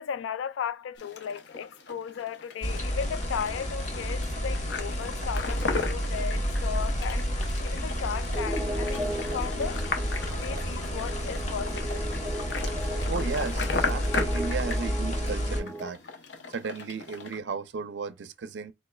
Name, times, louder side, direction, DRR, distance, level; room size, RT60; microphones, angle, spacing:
voice 1, 0.0-7.3 7.6-9.8 10.4-12.0, left 7 dB, 85° left, 0.3 m, -36 dB
sound 1, 1.0-17.4, left 4 dB, 65° left, 0.7 m, -37 dB
sound 2, 2.6-15.6, equal, 40° left, 0.9 m, -30 dB
sound 3, 8.3-15.9, right 1 dB, ahead, 0.6 m, -37 dB
voice 2, 13.1-16.0 16.5-18.7, right 5 dB, 70° right, 0.4 m, -34 dB
4.2 x 3.2 x 2.2 m
head